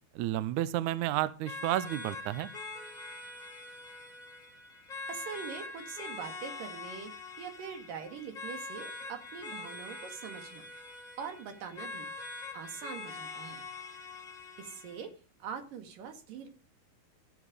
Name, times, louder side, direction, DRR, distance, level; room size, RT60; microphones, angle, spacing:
voice 1, 0.2-2.5, right 14 dB, 85° right, 16 dB, 1.7 m, -31 dB
sound 1, 1.5-15.0, left 3 dB, 20° left, 1.2 m, -44 dB
voice 2, 5.1-7.1 7.4-10.7 11.2-12.1 12.5-13.6 14.6-15.1 15.4-16.5, right 7 dB, 65° right, 7 dB, 3.3 m, -43 dB
13.5 x 9.1 x 4.9 m, 0.34 s
omnidirectional pair, 4.3 m